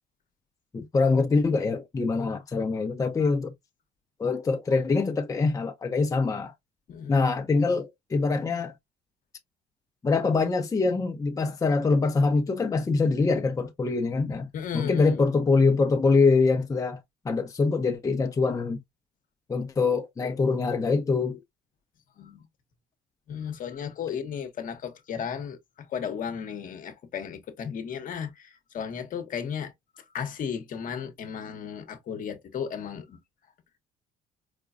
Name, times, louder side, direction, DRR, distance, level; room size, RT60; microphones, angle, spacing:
voice 1, 0.7-3.5 4.2-6.5 7.1-8.7 10.0-14.5 14.7-18.8 19.5-21.4, left 4 dB, 20° left, 0.6 m, -24 dB
voice 2, 6.9-7.2 14.5-15.2 22.2-22.4 23.3-25.6 25.9-29.7 30.1-33.2, left 7 dB, 55° left, 1.0 m, -34 dB
4.9 x 2.2 x 2.4 m
cardioid pair, 110°, 17 cm